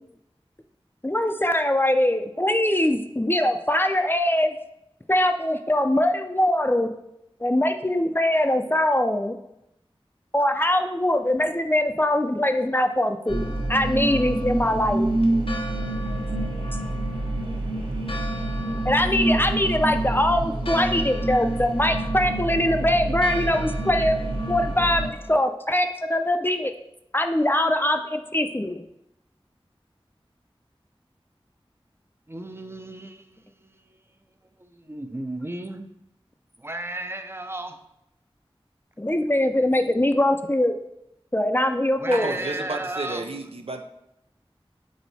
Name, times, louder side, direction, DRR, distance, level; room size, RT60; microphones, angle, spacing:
voice 1, 1.0-4.5 5.1-6.9 7.4-9.4 10.3-15.1 16.7-16.9 18.8-26.7 27.1-28.8 39.0-40.7 41.3-42.4, left 1 dB, 20° left, 6 dB, 0.5 m, -22 dB
Church bell, 13.3-25.4, left 1 dB, 65° left, 0.7 m, -41 dB
sound 1, 13.3-25.1, right 1 dB, 60° right, 1.1 m, -27 dB
voice 2, 32.3-34.0 34.6-35.9 36.6-37.8 42.0-43.4, right 2 dB, 25° right, 7 dB, 0.6 m, -35 dB
voice 3, 42.1-43.8, right 2 dB, 75° right, 4 dB, 0.6 m, -32 dB
6.2 x 3.9 x 4.1 m, 0.82 s
wide cardioid pair, 45°, 10 cm